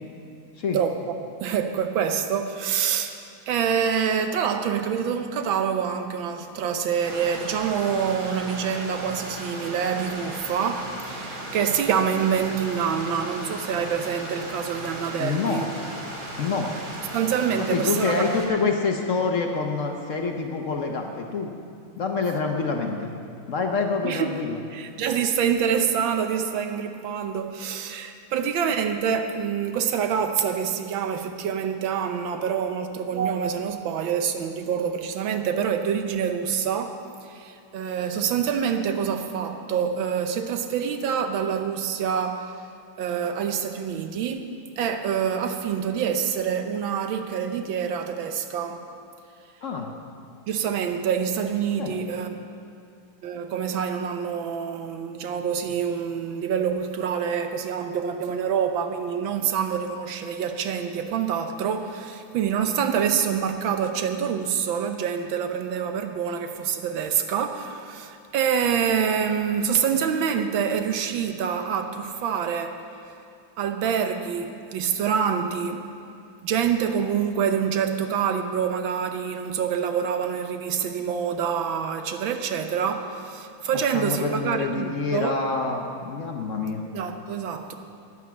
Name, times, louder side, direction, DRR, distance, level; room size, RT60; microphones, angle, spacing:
voice 1, 0.7-1.1 1.4-3.2 3.5-15.7 17.1-18.2 18.6-18.7 24.0-24.4 24.7-42.7 43.0-48.9 50.5-52.5 53.2-72.8 73.6-75.9 76.4-85.3 86.9-87.7, right 7 dB, 70° right, 7 dB, 1.5 m, -26 dB
Stream, 7.0-18.5, right 1 dB, 50° right, 2.2 m, -36 dB
voice 2, 15.2-15.6 16.4-16.7 17.7-21.5 22.0-23.1 23.5-24.6 49.6-49.9 51.8-51.9 83.9-86.8, left 4 dB, 55° left, 2 dB, 0.9 m, -26 dB
11.0 x 9.9 x 7.1 m, 2.4 s
omnidirectional pair, 2.3 m